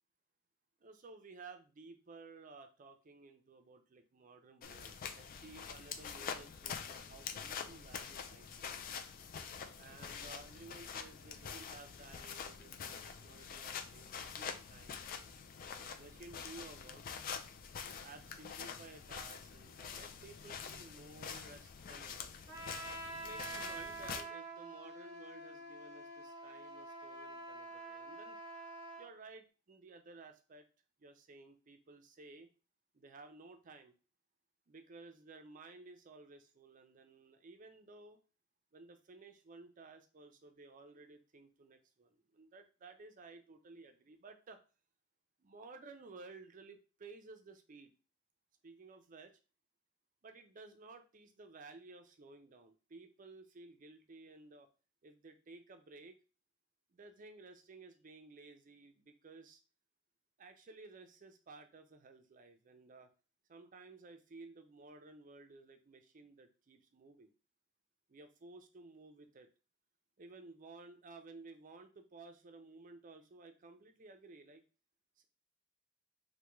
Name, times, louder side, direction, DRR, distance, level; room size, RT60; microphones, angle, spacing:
voice 1, 0.8-8.7 9.8-15.0 15.7-17.0 18.0-22.3 23.1-28.4 29.0-30.6 31.0-32.5 32.9-34.0 34.7-38.2 38.7-44.6 45.4-47.9 48.6-49.4 50.2-54.7 55.0-56.1 56.9-59.6 60.4-63.1 63.5-67.3 68.1-69.5 70.2-74.6 75.2-75.3, right 3 dB, 40° right, 7 dB, 0.5 m, -55 dB
sound 1, 4.6-24.2, left 6 dB, 45° left, 0.3 m, -46 dB
Trumpet, 22.5-29.1, right 2 dB, 20° right, 0.9 m, -47 dB
3.4 x 2.2 x 3.0 m, 0.34 s
head